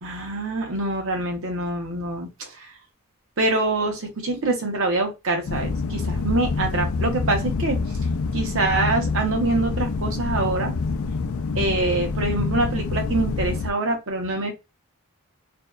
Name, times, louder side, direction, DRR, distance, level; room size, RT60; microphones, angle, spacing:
voice 1, 0.0-2.7 3.4-7.8 8.3-10.7 11.5-14.5, right 2 dB, 60° right, 3 dB, 0.8 m, -25 dB
sound 1, 5.5-13.7, left 4 dB, 70° left, 0.3 m, -26 dB
2.6 x 2.3 x 2.2 m, 0.24 s
head